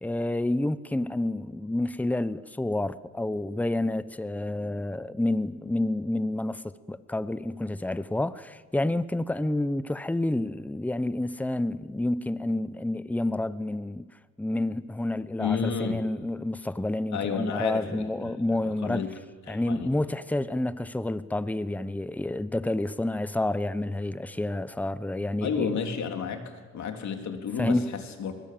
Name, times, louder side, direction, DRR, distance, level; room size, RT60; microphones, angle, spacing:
voice 1, 0.0-14.0 14.4-19.1 19.5-25.7 27.6-27.9, left 1 dB, 5° left, 0.8 m, -29 dB
voice 2, 15.4-16.0 17.1-19.1 19.5-19.9 25.4-28.3, left 6 dB, 65° left, 3.5 m, -32 dB
24.0 x 22.0 x 7.7 m
cardioid pair, 90°, 30 cm